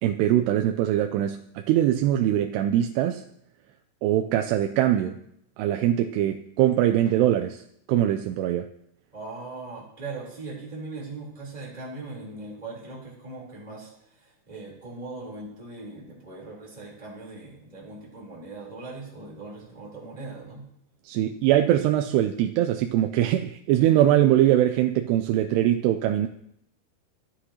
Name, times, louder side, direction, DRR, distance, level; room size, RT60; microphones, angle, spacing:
voice 1, 0.0-1.4 1.7-3.2 4.0-5.2 5.6-7.6 7.9-8.7 21.1-26.3, right 12 dB, 85° right, 5 dB, 2.6 m, -22 dB
voice 2, 9.1-20.6, right 3 dB, 10° right, -4 dB, 3.0 m, -40 dB
15.5 x 9.7 x 2.9 m, 0.74 s
omnidirectional pair, 4.7 m